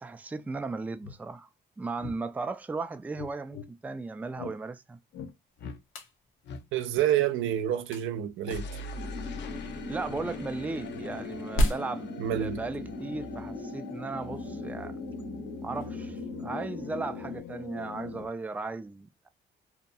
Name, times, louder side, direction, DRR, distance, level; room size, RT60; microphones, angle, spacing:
voice 1, 0.0-1.5 1.8-5.0 9.9-15.0 15.6-19.3, right 3 dB, 10° right, 0.3 m, -36 dB
sound 1, 1.0-1.2 2.0-2.2 3.1-3.7 4.4-4.6 5.1-5.3 5.6-5.8 6.5-6.6 8.4-18.3, left 6 dB, 60° left, 0.5 m, -41 dB
sound 2, 5.5-18.3, equal, 85° left, 0.9 m, -38 dB
voice 2, 6.7-8.7 12.2-12.6, right 11 dB, 85° right, 0.5 m, -28 dB
sound 3, 8.9-17.4, equal, 30° right, 0.8 m, -41 dB
2.8 x 2.2 x 2.6 m
cardioid pair, 90°, 20 cm